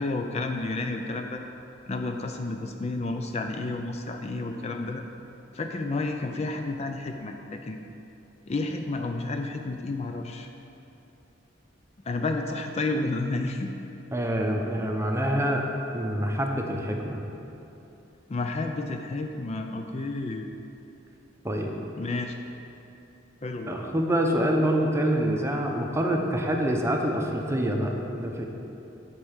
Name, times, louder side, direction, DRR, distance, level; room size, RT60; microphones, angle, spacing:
voice 1, 0.0-1.4 1.9-5.0 5.5-7.8 8.5-10.5 12.1-13.7 18.3-20.5 22.0-22.4 23.4-23.8, left 2 dB, 35° left, 4 dB, 0.4 m, -31 dB
voice 2, 14.1-15.6 15.9-17.2 21.4-21.7 23.7-28.4, equal, 15° right, 1 dB, 0.7 m, -26 dB
8.5 x 4.7 x 7.2 m, 2.9 s
head